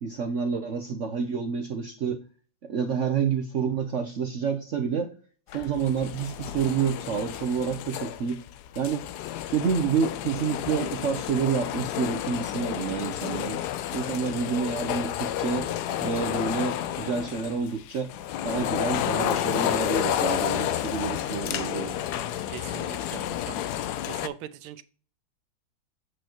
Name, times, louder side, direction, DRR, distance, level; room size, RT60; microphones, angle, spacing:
voice 1, 0.0-2.2 2.6-5.1 5.5-8.4 8.8-9.0 9.5-13.6 13.9-15.7 16.0-18.1 18.4-21.9, right 6 dB, 65° right, 5 dB, 0.7 m, -28 dB
sound 1, 5.5-24.3, left 11 dB, 75° left, 0.9 m, -31 dB
voice 2, 22.5-23.6 24.1-24.8, right 11 dB, 85° right, 13 dB, 1.5 m, -40 dB
8.2 x 6.4 x 3.0 m, 0.40 s
omnidirectional pair, 2.2 m